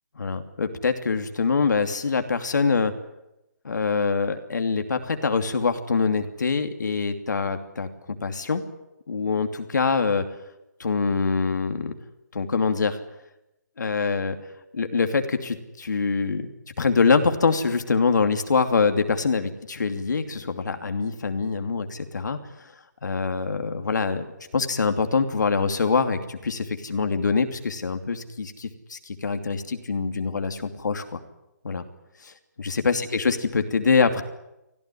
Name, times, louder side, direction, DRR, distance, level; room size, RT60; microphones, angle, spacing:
voice 1, 0.2-2.9 3.6-7.9 8.2-8.6 9.1-10.2 10.8-11.9 12.3-13.0 13.8-14.4 14.7-16.5 16.8-22.4 23.0-24.3 24.5-31.2 31.6-31.8 32.2-34.2, left 4 dB, 75° left, 7 dB, 2.7 m, -24 dB
24.5 x 16.0 x 9.9 m, 0.92 s
hypercardioid pair, 155°, 10 cm